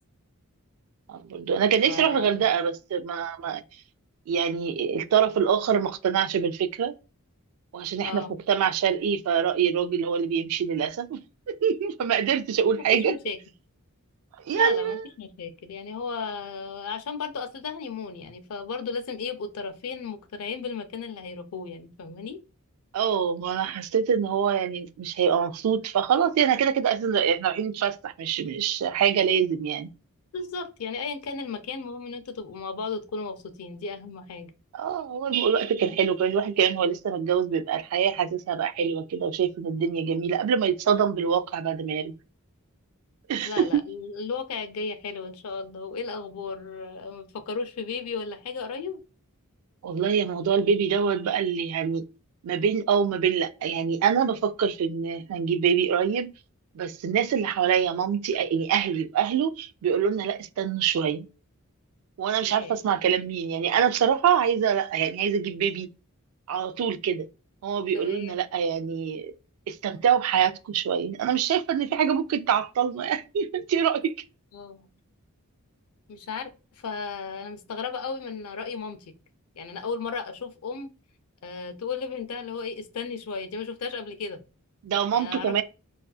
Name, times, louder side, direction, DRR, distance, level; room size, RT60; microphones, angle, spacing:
voice 1, 1.1-3.6 4.3-6.9 7.7-11.2 11.5-13.1 14.5-15.1 22.9-29.9 34.7-42.1 43.3-43.8 49.8-52.0 52.4-56.3 56.7-61.3 62.2-65.9 66.5-67.3 67.6-69.3 69.7-74.2 84.8-85.6, right 7 dB, 80° right, 0.3 m, -25 dB
voice 2, 1.9-2.4 8.0-8.4 13.1-13.4 14.5-22.4 30.3-34.5 43.5-49.0 62.4-62.8 67.9-68.4 74.5-74.9 76.1-79.0 79.6-80.9 81.4-84.4 85.1-85.6, left 5 dB, 85° left, 0.5 m, -35 dB
2.4 x 2.4 x 2.2 m
head